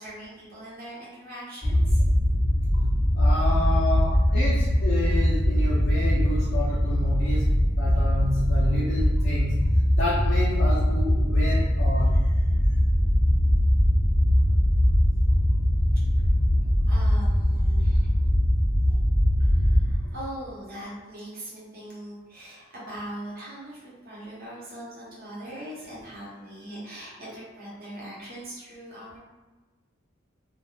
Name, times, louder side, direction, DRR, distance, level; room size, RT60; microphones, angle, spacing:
voice 1, 0.0-2.0 12.2-12.8 16.9-18.2 19.5-29.2, right 1 dB, 50° right, -7 dB, 0.9 m, -41 dB
sound 1, 1.6-20.0, equal, 10° left, 0.4 m, -21 dB
voice 2, 3.1-9.6 9.9-12.1 18.9-19.0 20.0-20.1, left 1 dB, 70° left, -7 dB, 0.5 m, -30 dB
2.3 x 2.1 x 3.0 m, 1.2 s
head